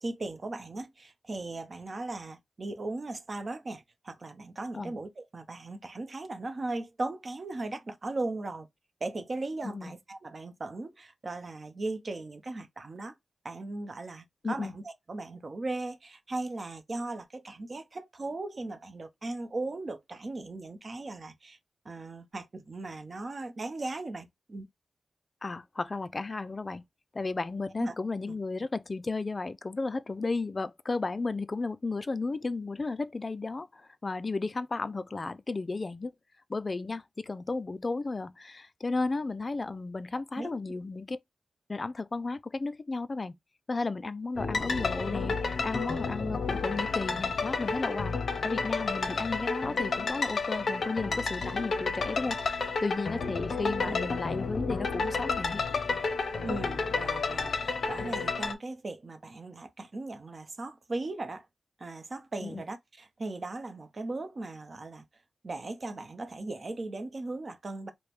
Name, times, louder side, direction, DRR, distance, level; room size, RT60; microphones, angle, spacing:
voice 1, 0.0-8.7 9.0-13.1 13.4-21.6 21.8-24.7 27.8-27.9 28.3-28.4 40.4-40.5 53.8-54.0 56.4-61.5 61.8-65.0 65.4-67.9, right 2 dB, 35° right, 0.7 m, -38 dB
voice 2, 25.4-26.8 27.1-36.1 36.5-41.2 41.7-43.4 43.7-55.6 62.4-62.6, left 3 dB, 30° left, 0.3 m, -34 dB
sound 1, 44.4-58.5, left 4 dB, 55° left, 0.7 m, -31 dB
5.0 x 2.1 x 3.0 m
wide cardioid pair, 155°, 0 cm